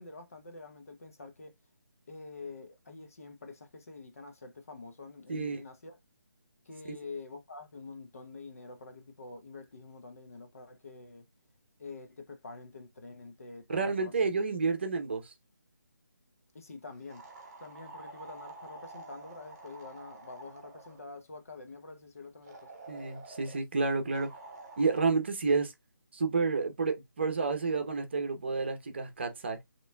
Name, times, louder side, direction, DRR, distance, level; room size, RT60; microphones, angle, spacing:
voice 1, 0.0-1.5 2.1-6.0 6.7-11.3 11.8-14.3 16.5-22.7, left 3 dB, 45° left, 0.8 m, -47 dB
voice 2, 5.3-5.6 13.7-15.3 22.9-24.3 24.8-25.7 26.1-29.6, right 4 dB, 35° right, 0.8 m, -30 dB
sound 1, 17.1-21.1 22.5-23.6 24.1-25.1, right 2 dB, 15° right, 1.2 m, -49 dB
6.8 x 3.1 x 2.2 m
hypercardioid pair, 175°, 11 cm